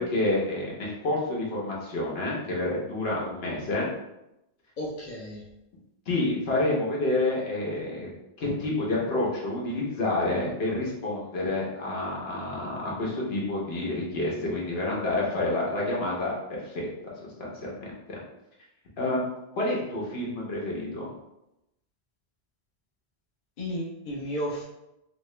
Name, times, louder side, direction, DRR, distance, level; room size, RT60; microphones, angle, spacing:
voice 1, 0.0-3.9 6.1-8.1 8.4-16.4 16.7-16.9 17.2-17.9 19.0-19.3 19.6-21.1, left 2 dB, 70° left, -4 dB, 1.1 m, -28 dB
voice 2, 4.8-5.4 23.6-24.6, equal, 50° left, -4 dB, 0.8 m, -33 dB
2.9 x 2.8 x 3.2 m, 0.89 s
omnidirectional pair, 1.1 m